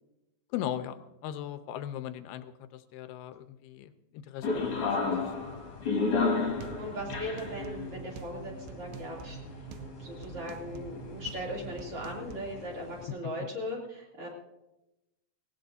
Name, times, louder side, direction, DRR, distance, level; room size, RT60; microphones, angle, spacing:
voice 1, 0.5-5.5 6.1-6.3, left 11 dB, 85° left, 10 dB, 2.6 m, -39 dB
sound 1, 4.4-13.0, left 4 dB, 45° left, 2.2 m, -34 dB
sound 2, 6.1-12.4, right 6 dB, 80° right, 2.7 m, -45 dB
voice 2, 6.8-9.4 10.0-14.3, equal, 40° right, -3 dB, 3.4 m, -38 dB
18.0 x 18.0 x 2.7 m, 0.95 s
omnidirectional pair, 4.6 m